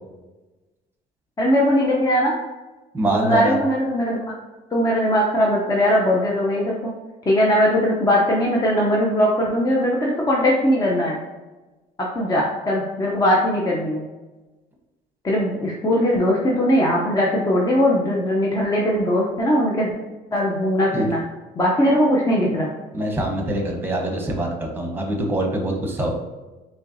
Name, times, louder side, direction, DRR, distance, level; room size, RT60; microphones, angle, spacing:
voice 1, 1.4-2.3 3.1-4.3 4.7-6.9 7.3-11.2 12.0-14.0 15.2-19.9 20.3-21.2 21.6-22.7, equal, 20° left, -3 dB, 0.6 m, -20 dB
voice 2, 2.9-3.6 20.9-21.1 22.9-26.1, right 1 dB, 10° right, 1 dB, 0.9 m, -24 dB
4.2 x 3.0 x 2.6 m, 1.2 s
cardioid pair, 110°, 17 cm